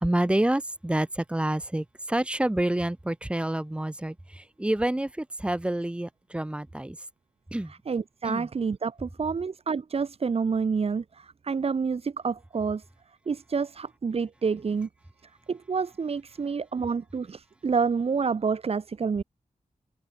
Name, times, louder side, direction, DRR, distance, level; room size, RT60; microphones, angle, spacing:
voice 1, 0.0-7.0 7.5-7.7 8.2-8.5, right 1 dB, 10° right, 0.7 m, -28 dB
voice 2, 7.9-12.8 13.3-14.9 15.5-19.2, right 5 dB, 45° right, 0.9 m, -28 dB
wide cardioid pair, 155°, 14 cm